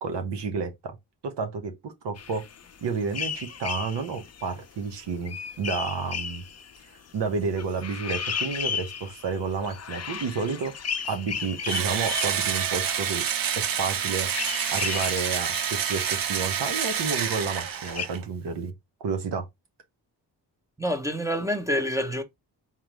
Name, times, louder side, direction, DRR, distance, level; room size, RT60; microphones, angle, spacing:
voice 1, 0.0-0.7 1.2-2.4 2.8-6.4 7.1-10.7 11.1-13.2 13.8-14.3 14.7-18.7 19.0-19.4, right 5 dB, 85° right, 1.1 m, -30 dB
sound 1, 2.2-13.4 13.7-13.8 14.0-18.1, left 7 dB, 40° left, 0.6 m, -35 dB
Engine / Drill, 11.7-18.2, right 8 dB, 55° right, 0.7 m, -28 dB
voice 2, 20.8-22.2, equal, 10° right, 0.7 m, -27 dB
3.8 x 3.0 x 3.0 m
cardioid pair, 75°, 41 cm